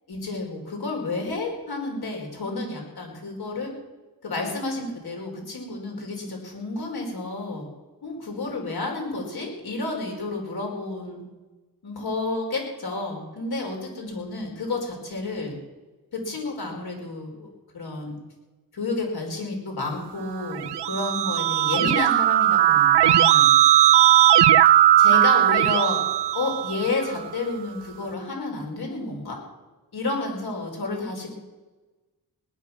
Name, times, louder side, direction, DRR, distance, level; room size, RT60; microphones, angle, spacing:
voice 1, 0.1-3.7 4.2-7.7 8.0-11.2 11.8-15.5 16.1-17.5 17.7-18.2 18.7-23.5 25.0-26.0 26.3-29.4 29.9-31.4, left 3 dB, 65° left, 1 dB, 4.8 m, -30 dB
Keyboard (musical), 20.4-27.1, right 12 dB, 80° right, 0.6 m, -18 dB
18.5 x 10.5 x 7.2 m, 1.2 s
wide cardioid pair, 95°, 40 cm